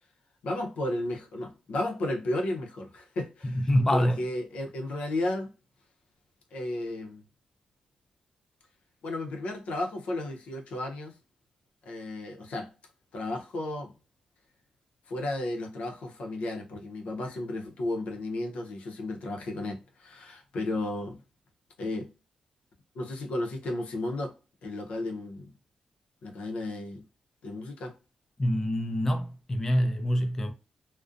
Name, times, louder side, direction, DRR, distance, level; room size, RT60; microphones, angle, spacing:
voice 1, 0.4-5.5 6.5-7.2 9.0-11.1 11.9-12.7 13.1-13.9 15.1-21.2 21.8-22.1 22.9-24.3 24.6-25.5 26.2-27.0 27.4-27.9, left 1 dB, 80° left, 0.6 m, -33 dB
voice 2, 3.4-4.2 28.4-30.5, equal, 20° left, 0.4 m, -25 dB
2.5 x 2.1 x 2.4 m
cardioid pair, 110°, 2 cm